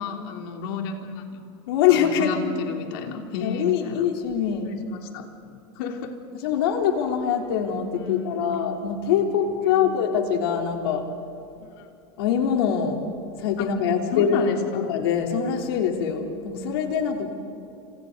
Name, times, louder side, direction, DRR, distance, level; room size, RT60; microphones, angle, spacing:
voice 1, 0.0-1.4 1.9-4.1 4.6-5.3 5.7-6.2 7.9-8.6 9.4-10.0 11.8-11.9 13.6-13.8 14.1-14.9, left 5 dB, 65° left, 3 dB, 3.2 m, -32 dB
voice 2, 1.7-2.6 3.4-4.7 6.4-11.0 12.2-13.0 13.4-14.5 14.9-17.3, left 8 dB, 90° left, 2 dB, 3.5 m, -23 dB
29.5 x 27.5 x 4.0 m, 2.7 s
supercardioid pair, 160°, 13 cm